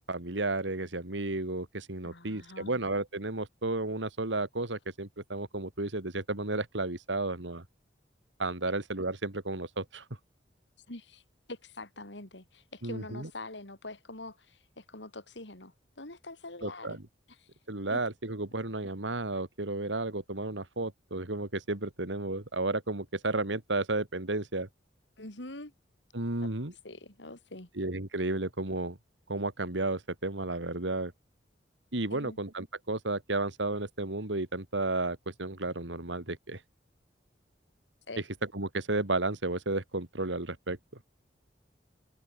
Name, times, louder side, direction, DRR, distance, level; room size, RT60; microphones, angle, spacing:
voice 1, 0.0-7.6 8.4-10.0 12.8-13.3 16.6-17.0 17.7-24.7 26.1-26.7 27.8-29.0 29.3-31.1 31.9-36.6 38.5-40.8, right 2 dB, 90° right, 2.8 m, -33 dB
voice 2, 2.0-2.7 10.9-11.2 11.5-17.0 17.4-17.5 17.9-18.0 25.2-25.7 26.8-27.7 32.1-32.4 38.1-38.2, left 2 dB, 80° left, 4.6 m, -44 dB
head